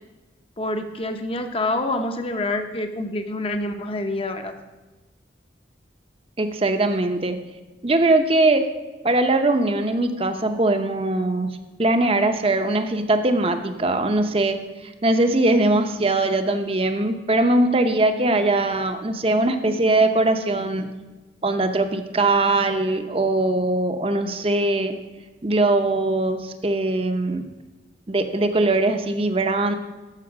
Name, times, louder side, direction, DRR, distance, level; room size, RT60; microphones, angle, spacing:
voice 1, 0.6-4.5, left 2 dB, 30° left, 7 dB, 0.8 m, -27 dB
voice 2, 6.4-7.4 7.8-8.6 9.0-11.5 11.8-20.9 21.4-24.9 25.4-27.4 28.1-29.7, right 2 dB, 30° right, 7 dB, 0.7 m, -21 dB
13.5 x 5.5 x 6.1 m, 1.2 s
head